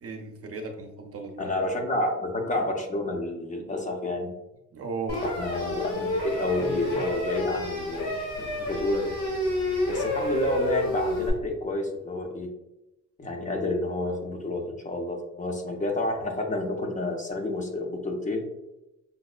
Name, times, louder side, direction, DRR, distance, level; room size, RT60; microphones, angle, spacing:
voice 1, 0.0-1.5 4.7-5.2 6.8-7.0, right 4 dB, 50° right, 3 dB, 0.6 m, -36 dB
voice 2, 1.4-4.3 5.2-9.1 9.9-12.5 13.2-18.5, left 2 dB, 25° left, 2 dB, 0.6 m, -29 dB
sound 1, 5.1-11.3, left 1 dB, 90° left, 1.4 m, -29 dB
5.2 x 2.0 x 2.4 m, 0.94 s
cardioid pair, 90°, 30 cm